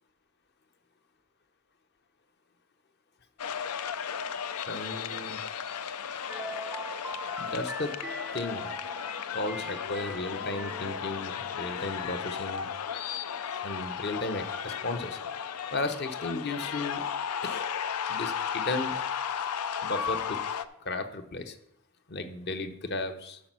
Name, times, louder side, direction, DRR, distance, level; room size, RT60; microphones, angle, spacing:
sound 1, 3.4-20.7, left 7 dB, 90° left, 0.5 m, -35 dB
voice 1, 4.7-5.4 7.4-8.0 8.3-8.7 9.3-12.7 13.6-15.2 15.7-17.0 17.4-17.7 18.1-18.9 19.8-20.4 20.8-21.6 22.1-23.4, left 2 dB, 50° left, 7 dB, 0.8 m, -34 dB
sound 2, 6.3-11.6, right 1 dB, 5° right, 0.3 m, -42 dB
8.5 x 6.1 x 6.0 m, 0.78 s
head